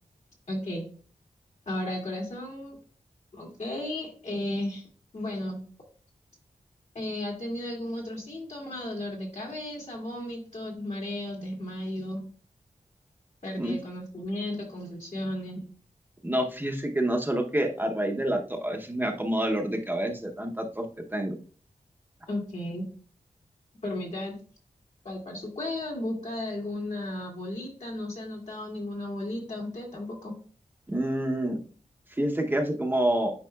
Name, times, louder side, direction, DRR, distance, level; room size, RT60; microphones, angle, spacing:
voice 1, 0.5-0.9 1.7-2.8 3.3-4.8 5.1-5.6 6.9-12.2 13.4-15.6 22.3-22.9 23.8-24.4 25.0-30.3, left 1 dB, 60° left, 0 dB, 2.2 m, -34 dB
voice 2, 16.2-20.8 21.1-21.3 30.9-31.6 32.1-33.3, right 1 dB, 15° right, 2 dB, 0.7 m, -28 dB
9.1 x 4.8 x 2.3 m, 0.42 s
wide cardioid pair, 120°, 13 cm